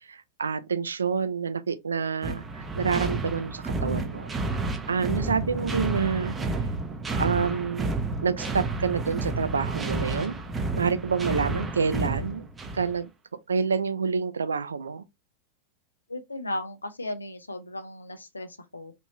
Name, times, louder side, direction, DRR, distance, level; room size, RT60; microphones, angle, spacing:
voice 1, 0.0-4.3 4.9-6.3 7.2-7.9 8.2-10.4 10.8-12.4 12.7-13.1 13.5-15.0, right 5 dB, 70° right, 0.3 m, -28 dB
sound 1, 2.2-13.0, right 2 dB, 15° right, 0.6 m, -30 dB
voice 2, 16.1-18.9, left 1 dB, 80° left, 0.5 m, -36 dB
3.0 x 2.6 x 2.9 m
figure-of-eight pair, 90°, 0 cm